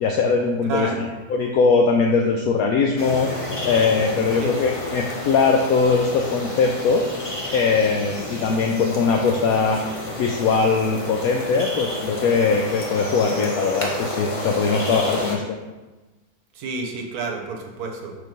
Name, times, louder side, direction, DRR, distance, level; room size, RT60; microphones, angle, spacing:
voice 1, 0.0-3.3 3.6-7.1 7.5-9.8 10.2-15.4, left 4 dB, 70° left, 2 dB, 0.9 m, -21 dB
voice 2, 0.6-1.0 4.3-4.6 16.5-18.2, right 4 dB, 70° right, 2 dB, 1.4 m, -30 dB
sound 1, 3.0-15.4, left 2 dB, 25° left, 0.7 m, -30 dB
6.6 x 3.5 x 5.1 m, 1.2 s
omnidirectional pair, 1.8 m